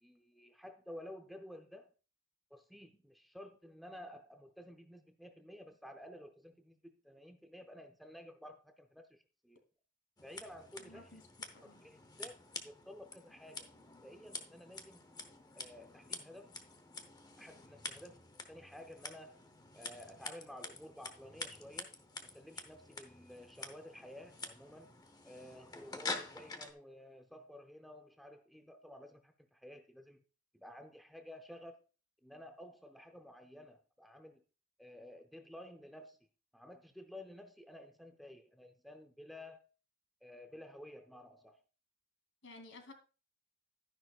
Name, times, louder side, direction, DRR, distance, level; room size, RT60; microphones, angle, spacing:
voice 1, 0.0-1.9 2.5-9.6 10.2-11.1 11.6-13.7 14.0-15.0 15.5-16.6 17.4-19.4 19.7-24.9 25.2-30.2 30.5-31.8 32.2-34.4 34.8-36.2 36.5-39.6 40.2-41.6, left 1 dB, ahead, 0.5 m, -53 dB
Scissors, 10.2-26.7, left 3 dB, 20° left, 0.9 m, -48 dB
voice 2, 10.8-11.2 11.5-11.8 42.4-42.9, left 2 dB, 65° left, 2.8 m, -54 dB
12.0 x 10.5 x 2.4 m
head